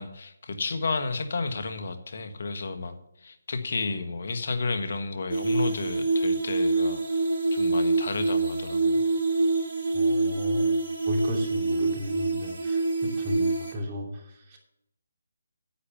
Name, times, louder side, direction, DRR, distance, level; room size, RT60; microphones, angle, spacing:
voice 1, 0.0-9.0, left 3 dB, 60° left, 9 dB, 1.6 m, -32 dB
sound 1, 5.3-13.7, right 3 dB, 55° right, 4.7 m, -26 dB
voice 2, 9.9-10.7 11.0-14.6, equal, 30° right, 1 dB, 2.8 m, -35 dB
10.0 x 8.6 x 5.7 m, 0.82 s
figure-of-eight pair, 155°, 0 cm